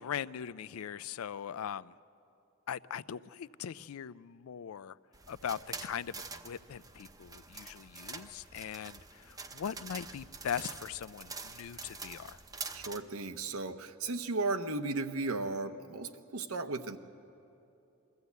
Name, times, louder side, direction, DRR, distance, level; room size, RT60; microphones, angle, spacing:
voice 1, 0.0-1.9 2.7-5.0 5.3-12.4, left 8 dB, 85° left, 18 dB, 0.4 m, -40 dB
sound 1, 5.1-13.0, right 4 dB, 15° right, 0.6 m, -46 dB
voice 2, 12.7-17.0, right 3 dB, 85° right, 8 dB, 0.9 m, -35 dB
23.0 x 14.5 x 8.2 m, 2.8 s
head